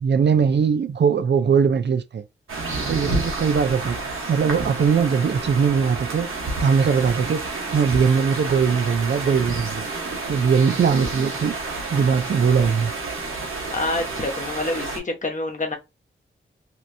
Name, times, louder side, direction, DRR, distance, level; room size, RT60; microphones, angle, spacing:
voice 1, 0.0-2.2 2.9-6.3 6.6-9.9 10.3-12.9, right 6 dB, 60° right, 0.5 m, -21 dB
sound 1, 2.5-15.0, right 3 dB, 85° right, 1.1 m, -30 dB
voice 2, 13.7-15.8, left 2 dB, 40° left, 1.1 m, -27 dB
3.1 x 2.9 x 2.6 m
cardioid pair, 70°, 21 cm